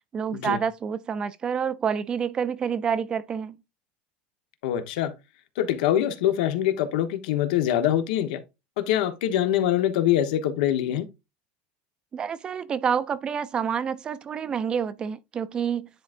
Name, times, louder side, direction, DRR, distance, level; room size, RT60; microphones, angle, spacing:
voice 1, 0.1-3.6 12.1-15.9, right 7 dB, 20° right, 0.3 m, -28 dB
voice 2, 4.6-5.1 5.6-8.4 8.8-11.1, left 11 dB, 80° left, 1.1 m, -24 dB
10.5 x 3.8 x 2.5 m
cardioid pair, 175°, 4 cm